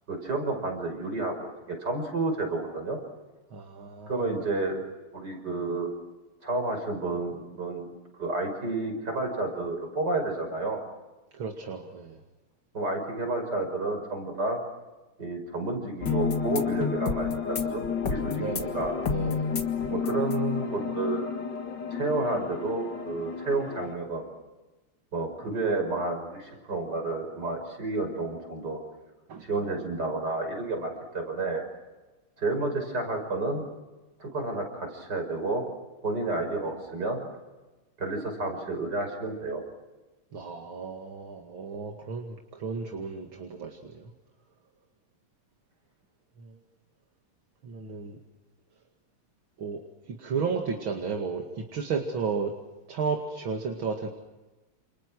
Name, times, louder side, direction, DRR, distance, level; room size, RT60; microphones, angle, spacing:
voice 1, 0.1-3.0 4.1-4.8 5.1-5.9 6.4-7.9 8.2-10.8 12.7-14.6 15.2-17.8 18.1-18.9 19.9-21.3 21.9-24.3 25.1-28.8 29.4-31.6 32.4-33.6 34.2-35.6 36.0-37.2 38.0-39.6, right 2 dB, 50° right, 4 dB, 6.4 m, -30 dB
voice 2, 3.5-4.3 11.3-12.2 18.4-18.8 19.1-19.5 29.3-29.5 40.3-44.1 46.4-46.6 47.6-48.2 49.6-52.5 52.9-54.1, right 5 dB, 65° right, 3 dB, 3.0 m, -33 dB
sound 1, 16.0-23.9, left 6 dB, 55° left, 2.5 m, -30 dB
29.5 x 29.0 x 6.3 m, 1.2 s
omnidirectional pair, 2.4 m